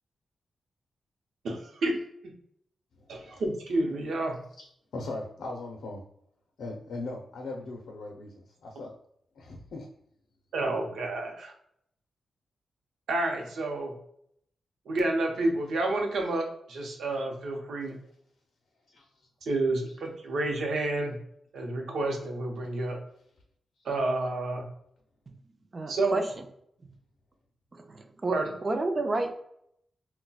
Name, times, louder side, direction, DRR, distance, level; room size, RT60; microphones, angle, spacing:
voice 1, 1.4-2.0 3.1-4.4 10.5-11.5 13.1-13.9 14.9-18.0 19.4-21.2 21.5-23.0 23.8-24.6 25.9-26.2 28.3-28.5, right 2 dB, 90° right, 2 dB, 0.6 m, -29 dB
voice 2, 3.0-3.4 4.6-4.7 4.9-6.0 6.6-8.9 9.3-9.9 18.9-19.3, left 2 dB, 90° left, 1 dB, 0.5 m, -39 dB
voice 3, 25.7-26.2 26.8-26.9 27.7-29.3, right 2 dB, 35° right, 6 dB, 0.4 m, -30 dB
3.9 x 2.1 x 2.2 m, 0.70 s
wide cardioid pair, 100°, 0 cm